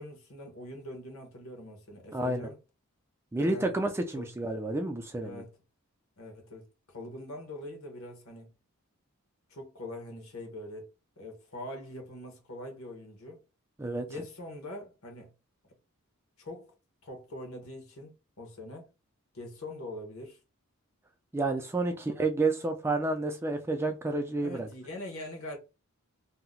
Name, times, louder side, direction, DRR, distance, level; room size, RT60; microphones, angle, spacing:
voice 1, 0.0-2.6 3.3-3.7 4.1-4.3 5.2-5.6 6.2-8.5 9.5-10.9 11.2-13.4 14.1-15.3 16.4-16.7 17.0-18.9 19.3-20.4 24.4-25.6, left 1 dB, 70° left, 1.0 m, -43 dB
voice 2, 2.1-2.4 3.3-5.4 13.8-14.1 21.3-24.7, right 2 dB, 10° right, 0.3 m, -30 dB
2.8 x 2.0 x 3.6 m
head